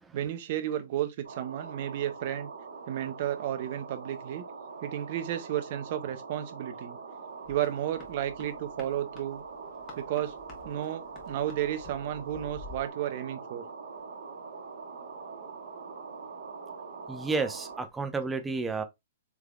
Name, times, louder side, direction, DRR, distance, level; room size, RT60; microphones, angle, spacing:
voice 1, 0.1-2.5 2.9-4.4 4.8-7.0 7.5-9.4 10.0-10.4 10.6-13.6, right 11 dB, 45° right, 0.6 m, -32 dB
sound 1, 1.2-17.9, right 4 dB, 80° right, 1.1 m, -43 dB
sound 2, 7.4-12.9, left 4 dB, 30° left, 1.2 m, -51 dB
voice 2, 17.1-18.8, right 4 dB, 10° right, 0.5 m, -31 dB
3.5 x 3.3 x 2.3 m
hypercardioid pair, 145°, 0 cm